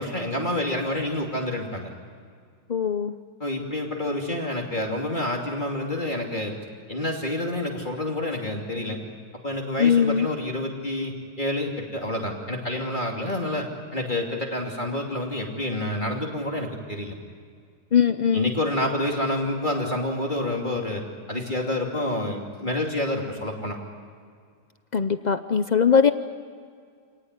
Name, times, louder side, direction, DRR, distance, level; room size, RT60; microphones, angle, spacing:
voice 1, 0.0-1.9 3.4-6.6 6.9-9.0 9.4-17.1 18.3-21.0 21.3-23.8, left 1 dB, 25° left, 0 dB, 2.9 m, -28 dB
voice 2, 2.7-3.1 9.8-10.3 17.9-18.5 24.9-26.1, left 7 dB, 90° left, 10 dB, 0.3 m, -20 dB
28.0 x 19.0 x 9.6 m, 2.1 s
omnidirectional pair, 1.8 m